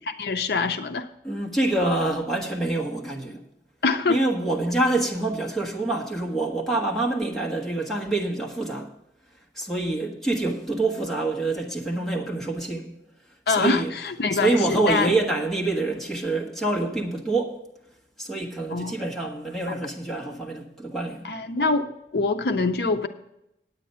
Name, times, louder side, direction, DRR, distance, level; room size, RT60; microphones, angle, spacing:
voice 1, 0.1-1.1 3.8-4.2 13.5-15.1 18.7-18.9 21.2-21.8 22.1-23.1, left 3 dB, 60° left, 0.5 m, -24 dB
voice 2, 1.2-3.4 4.1-8.9 9.5-12.9 13.5-13.9 14.3-17.6 18.2-21.3, right 2 dB, ahead, 1.5 m, -26 dB
9.3 x 8.9 x 5.5 m
head